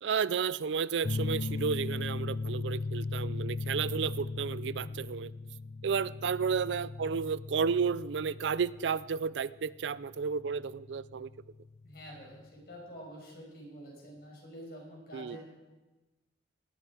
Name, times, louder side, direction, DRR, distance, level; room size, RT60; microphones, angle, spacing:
voice 1, 0.0-5.3 5.8-11.3 15.1-15.4, right 6 dB, 90° right, 19 dB, 0.4 m, -32 dB
sound 1, 1.0-12.2, left 3 dB, 40° left, 0.4 m, -38 dB
voice 2, 11.8-15.4, equal, 60° left, -2 dB, 6.2 m, -48 dB
19.0 x 13.5 x 4.9 m, 1.1 s
head